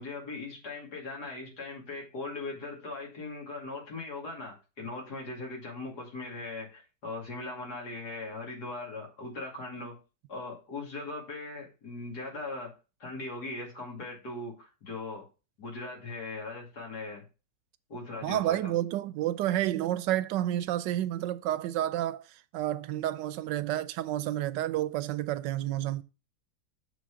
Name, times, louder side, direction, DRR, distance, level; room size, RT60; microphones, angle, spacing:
voice 1, 0.0-10.0 10.3-12.7 13.0-15.2 15.6-17.2 17.9-18.7, left 3 dB, 65° left, 3.1 m, -39 dB
voice 2, 18.2-26.0, right 13 dB, 85° right, 1.3 m, -30 dB
7.0 x 4.1 x 6.1 m
omnidirectional pair, 1.9 m